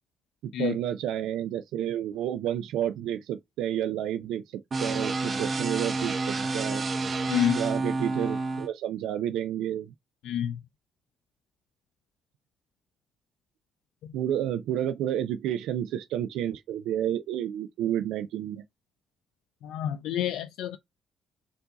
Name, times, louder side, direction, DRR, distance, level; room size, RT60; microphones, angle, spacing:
voice 1, 0.4-6.8 7.5-9.9 14.1-18.6, right 11 dB, 90° right, 0.3 m, -30 dB
sound 1, 4.7-8.7, right 3 dB, 40° right, 1.3 m, -29 dB
voice 2, 7.3-7.6 10.2-10.6 19.6-20.8, left 10 dB, 85° left, 0.4 m, -28 dB
4.5 x 2.6 x 3.9 m
cardioid pair, 90°, 0 cm